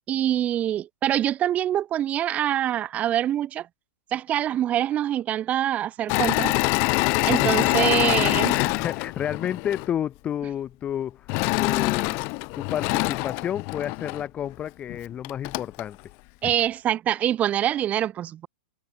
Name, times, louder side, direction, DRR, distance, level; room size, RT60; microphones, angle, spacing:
voice 1, 0.1-3.7 4.1-6.6 7.2-8.5 16.4-18.5, right 11 dB, 20° right, 5.6 m, -25 dB
Engine / Mechanisms, 6.1-9.9 11.3-14.2 14.9-15.0 15.2-15.8, left 32 dB, 35° left, 3.6 m, -24 dB
voice 2, 7.2-12.2 12.5-16.1 16.4-16.6, left 10 dB, 20° left, 4.6 m, -31 dB
hypercardioid pair, 150°, 7 cm